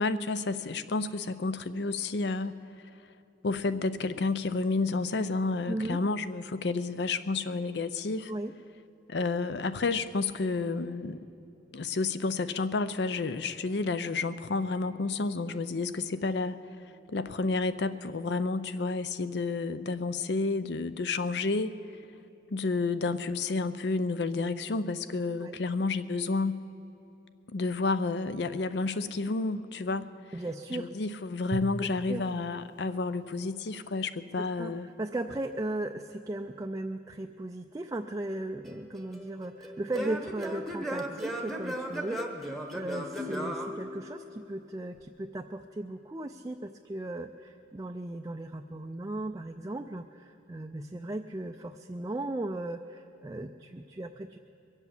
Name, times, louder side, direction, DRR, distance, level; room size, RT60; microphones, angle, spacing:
voice 1, 0.0-2.6 3.4-8.3 9.1-11.2 11.7-16.6 17.1-21.7 22.5-26.6 27.5-30.1 30.7-34.9, left 3 dB, 60° left, 13 dB, 0.5 m, -30 dB
voice 2, 5.7-6.0 8.3-8.5 25.4-25.6 30.3-30.9 31.8-32.2 34.6-54.4, right 2 dB, 20° right, 5 dB, 0.4 m, -37 dB
Drum, 31.5-33.9, right 3 dB, 70° right, 0.6 m, -42 dB
Singing / Plucked string instrument, 38.7-44.5, equal, ahead, 1.0 m, -36 dB
22.5 x 8.1 x 7.2 m, 2.9 s
head